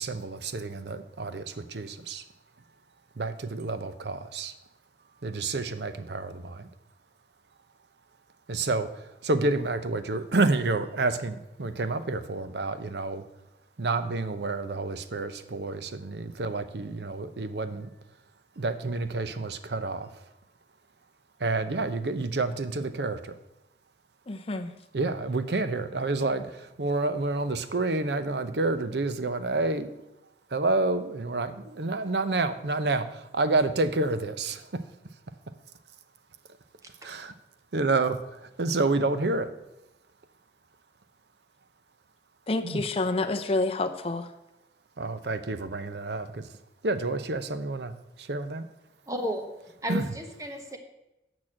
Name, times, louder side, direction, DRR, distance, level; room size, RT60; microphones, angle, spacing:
voice 1, 0.0-2.2 3.2-4.5 5.2-6.7 8.5-8.9 9.2-13.2 13.8-17.9 18.6-20.1 21.4-23.3 24.9-29.9 30.5-34.7 37.0-37.3 37.7-39.5 42.6-42.8 45.0-46.5 46.8-47.9 48.2-48.7 49.9-50.0, right 3 dB, 70° right, 11 dB, 0.7 m, -29 dB
voice 2, 24.3-24.8 42.5-44.3, left 2 dB, 35° left, 7 dB, 0.7 m, -28 dB
voice 3, 49.1-49.5 49.8-50.8, equal, 20° right, 5 dB, 1.2 m, -33 dB
8.7 x 6.2 x 7.4 m, 0.94 s
head